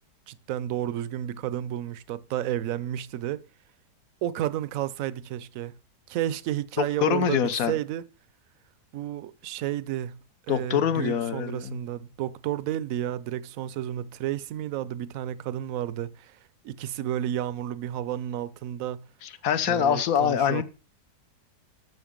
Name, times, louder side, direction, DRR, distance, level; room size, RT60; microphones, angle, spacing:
voice 1, 0.3-3.4 4.2-5.7 6.1-8.0 8.9-10.2 10.5-16.3 16.6-19.0 19.7-20.6, right 12 dB, 65° right, 1.0 m, -31 dB
voice 2, 6.8-7.8 10.5-11.8 19.2-20.6, left 8 dB, 60° left, 1.2 m, -25 dB
12.5 x 6.5 x 5.1 m
omnidirectional pair, 1.8 m